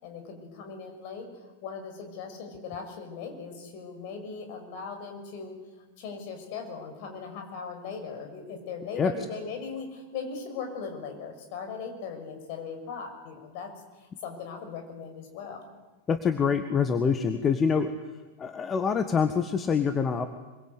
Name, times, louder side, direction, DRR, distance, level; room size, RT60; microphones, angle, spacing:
voice 1, 0.0-1.3 1.6-5.6 6.0-13.7 14.0-15.7, left 5 dB, 45° left, 4 dB, 6.3 m, -39 dB
voice 2, 16.1-17.9 18.4-20.2, left 6 dB, 20° left, 8 dB, 1.6 m, -25 dB
25.0 x 23.0 x 8.3 m, 1.2 s
figure-of-eight pair, 90°, 0 cm